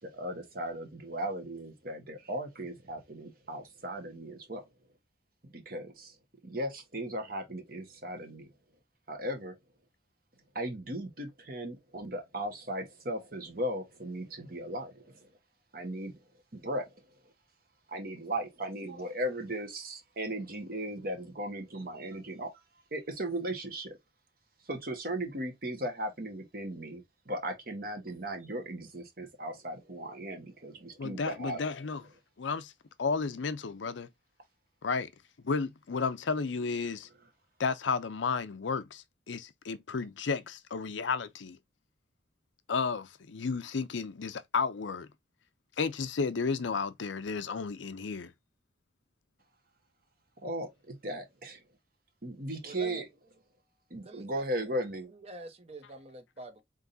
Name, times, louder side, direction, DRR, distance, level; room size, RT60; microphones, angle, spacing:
voice 1, 0.0-4.7 5.4-6.2 6.4-8.5 9.1-9.6 10.5-15.3 15.7-16.2 16.5-17.3 17.9-22.6 22.9-24.0 24.6-31.6 50.4-51.6 52.2-53.0 53.9-55.1, right 1 dB, 50° right, 1.3 m, -37 dB
voice 2, 31.0-32.0 32.4-32.7 33.0-34.1 34.8-35.1 35.4-37.1 37.6-41.6 42.7-45.1 45.8-48.3, left 5 dB, 85° left, 0.6 m, -32 dB
voice 3, 52.6-53.0 54.0-54.7 55.1-56.6, right 2 dB, 35° right, 0.9 m, -47 dB
3.9 x 3.6 x 2.6 m
head